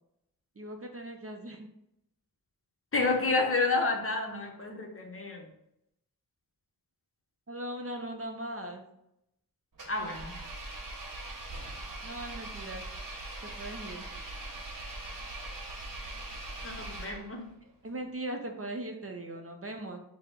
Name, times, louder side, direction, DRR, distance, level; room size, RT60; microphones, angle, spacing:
voice 1, 0.6-1.7 7.5-8.8 12.0-12.8 13.4-14.1 17.6-20.0, right 1 dB, 40° right, 3 dB, 0.5 m, -39 dB
voice 2, 2.9-5.5 9.9-10.4 16.6-17.4, left 3 dB, 35° left, 2 dB, 0.7 m, -30 dB
Engine, 9.7-17.5, right 2 dB, 60° right, 0.8 m, -41 dB
4.5 x 2.0 x 3.6 m, 0.82 s
wide cardioid pair, 60°, 36 cm